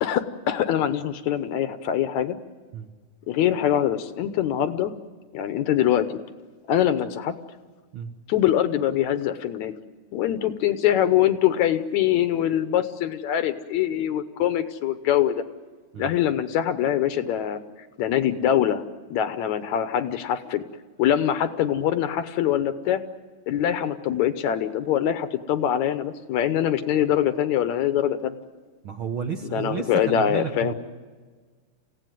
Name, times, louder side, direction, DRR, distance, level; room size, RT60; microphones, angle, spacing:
voice 1, 0.0-2.4 3.3-4.9 5.3-6.1 6.7-7.3 8.3-9.7 10.1-15.4 16.0-17.6 18.0-18.8 19.1-20.6 21.0-23.0 23.5-28.4 29.4-30.7, left 10 dB, 70° left, 11 dB, 2.2 m, -23 dB
voice 2, 28.8-30.7, right 7 dB, 55° right, 5 dB, 1.6 m, -31 dB
28.5 x 16.5 x 9.3 m, 1.5 s
omnidirectional pair, 3.6 m